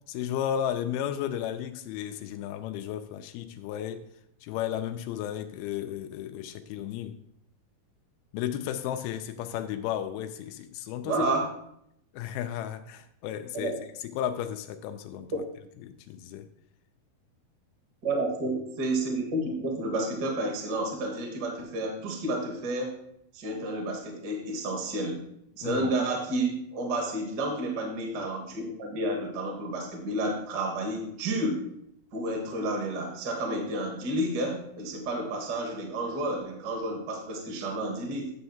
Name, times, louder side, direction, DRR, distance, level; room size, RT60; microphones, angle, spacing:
voice 1, 0.1-4.0 4.4-7.2 8.3-11.1 12.1-13.7 14.0-15.4 15.8-16.5 25.6-26.0, left 10 dB, 90° left, 8 dB, 2.6 m, -34 dB
voice 2, 11.0-11.5 13.5-13.8 15.3-15.4 18.0-23.0 23.3-25.2 25.6-31.6 32.1-38.3, right 1 dB, 45° right, 1 dB, 1.4 m, -30 dB
10.5 x 3.4 x 7.1 m, 0.74 s
omnidirectional pair, 4.3 m